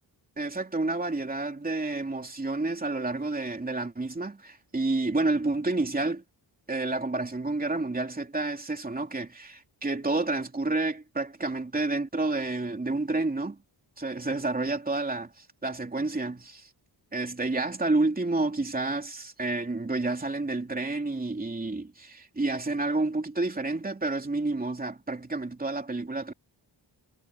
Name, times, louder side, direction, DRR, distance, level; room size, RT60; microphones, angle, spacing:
voice 1, 0.4-6.2 6.7-13.6 14.0-16.7 17.1-26.3, right 2 dB, 20° right, 3.1 m, -29 dB
wide cardioid pair, 105°, 43 cm